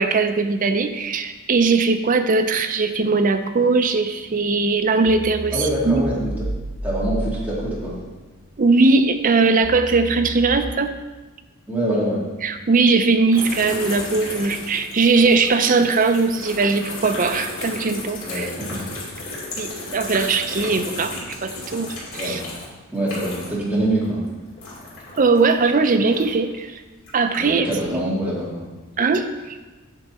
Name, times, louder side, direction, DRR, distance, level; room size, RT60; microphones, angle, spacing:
voice 1, 0.0-6.0 8.6-10.9 12.4-18.5 19.6-21.1 21.4-22.4 25.2-26.8 27.1-27.7 27.9-28.1 29.0-29.6, right 4 dB, 40° right, 8 dB, 0.5 m, -20 dB
sound 1, 3.9-4.5 5.1-7.9 8.3-10.6, equal, 90° right, 1.1 m, -32 dB
voice 2, 5.5-6.3 6.8-8.0 11.7-12.2 18.2-18.8 22.1-22.4 22.9-24.2 27.4-28.7, right 1 dB, 5° right, -7 dB, 2.2 m, -24 dB
sound 2, 13.3-23.7 23.9-26.5 27.0-27.8, left 2 dB, 65° left, 2.6 m, -34 dB
9.1 x 6.1 x 4.2 m, 1.2 s
head